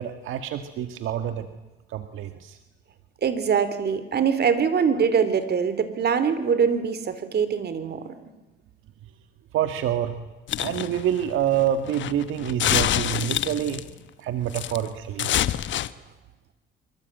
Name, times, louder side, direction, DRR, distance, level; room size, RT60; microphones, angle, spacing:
voice 1, 0.0-1.5 1.9-2.6 9.5-10.2 10.6-13.8 14.2-15.3, right 10 dB, 85° right, 9 dB, 1.7 m, -27 dB
voice 2, 3.2-8.1, right 6 dB, 55° right, 12 dB, 3.8 m, -23 dB
sound 1, 10.5-13.9 14.5-14.9 15.2-15.9, left 11 dB, 70° left, 1.1 m, -26 dB
26.0 x 24.5 x 9.2 m, 1.1 s
cardioid pair, 90°, 20 cm